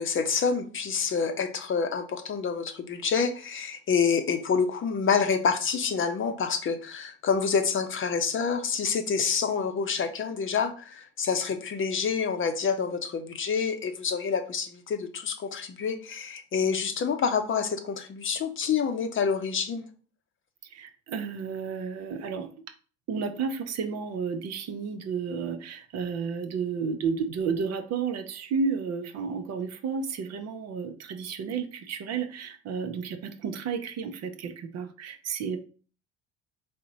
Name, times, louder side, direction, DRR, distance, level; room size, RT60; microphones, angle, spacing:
voice 1, 0.0-19.8, left 6 dB, 40° left, 7 dB, 0.7 m, -27 dB
voice 2, 20.6-22.5 23.1-35.6, right 5 dB, 50° right, 8 dB, 0.6 m, -32 dB
3.8 x 2.1 x 3.8 m, 0.39 s
hypercardioid pair, 65°, 32 cm